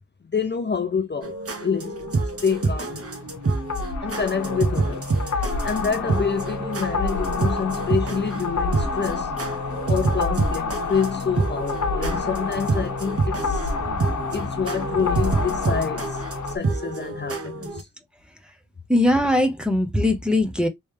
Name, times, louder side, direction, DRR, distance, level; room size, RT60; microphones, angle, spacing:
voice 1, 0.3-2.1 2.4-3.2 4.0-5.0 5.3-9.3 9.9-13.7 14.3-16.2 16.5-17.9, left 6 dB, 35° left, 0.5 m, -27 dB
sound 1, 1.2-17.8, right 3 dB, 50° right, 0.9 m, -28 dB
sound 2, 2.1-16.6, left 4 dB, 65° left, 0.8 m, -29 dB
voice 2, 18.9-20.7, left 1 dB, 5° right, 0.9 m, -20 dB
3.2 x 3.1 x 3.2 m
wide cardioid pair, 100°, 30 cm